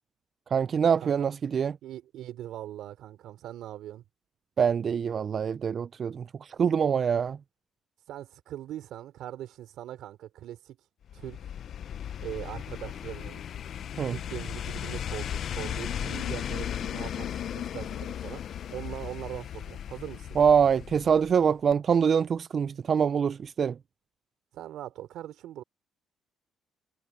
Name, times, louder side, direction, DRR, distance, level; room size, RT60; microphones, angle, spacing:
voice 1, 0.5-1.8 4.6-7.4 14.0-14.2 20.4-23.8, right 7 dB, 45° right, 0.3 m, -24 dB
voice 2, 1.8-4.0 8.1-10.8 11.1-11.4 12.2-13.4 14.1-18.4 18.7-20.4 24.5-25.6, right 12 dB, 80° right, 3.3 m, -41 dB
sound 1, 11.1-21.5 21.7-21.8, left 9 dB, 60° left, 0.6 m, -36 dB
cardioid pair, 115°, 0 cm